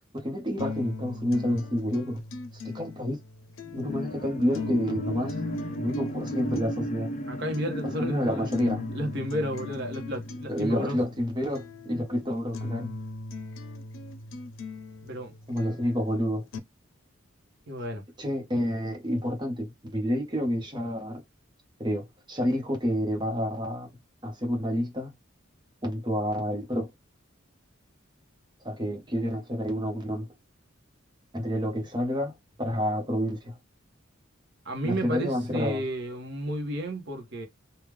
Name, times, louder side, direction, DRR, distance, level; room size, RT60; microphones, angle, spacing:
voice 1, 0.2-2.1 2.6-3.2 3.7-5.3 5.8-7.1 8.0-8.9 10.5-12.9 15.5-16.4 18.2-21.2 21.8-23.9 24.2-25.1 25.8-26.9 28.6-30.3 31.3-33.6 34.8-35.8, equal, 20° right, 0.9 m, -29 dB
sound 1, 0.6-16.6, left 3 dB, 85° left, 0.6 m, -40 dB
sound 2, 3.6-11.4 11.9-12.0, left 1 dB, 35° left, 0.6 m, -36 dB
voice 2, 7.3-8.5 8.9-11.0 15.0-15.3 17.7-18.0 34.6-37.5, equal, 60° right, 0.9 m, -32 dB
3.5 x 2.3 x 3.2 m
head